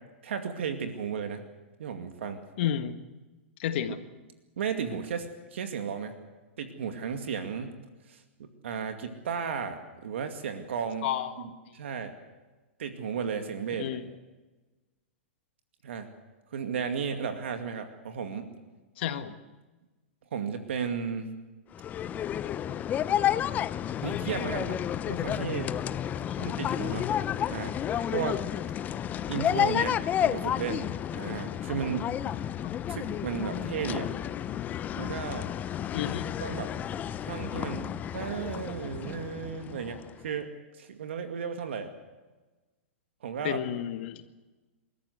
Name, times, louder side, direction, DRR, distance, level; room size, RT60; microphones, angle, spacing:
voice 1, 0.2-1.4 1.8-2.4 3.9-4.0 4.6-6.1 6.6-7.7 8.1-11.1 11.7-12.1 12.8-13.9 15.8-16.1 16.5-18.5 20.3-21.4 24.0-24.8 25.1-25.7 26.4-27.1 27.5-27.8 28.1-28.4 29.3-32.1 32.9-34.1 35.0-35.5 36.4-36.7 37.2-40.5 40.8-41.9 43.2-43.6, right 6 dB, 75° right, 6 dB, 2.3 m, -34 dB
voice 2, 2.6-3.0 3.6-4.0 11.0-11.5 13.8-14.0 19.0-19.4 26.3-26.4 32.6-32.7 35.9-36.3 43.4-44.3, left 10 dB, 60° left, 9 dB, 1.7 m, -31 dB
sound 1, 21.7-40.2, left 10 dB, 25° left, 0.7 m, -31 dB
27.5 x 13.5 x 8.1 m, 1.2 s
hypercardioid pair, 120°, 7 cm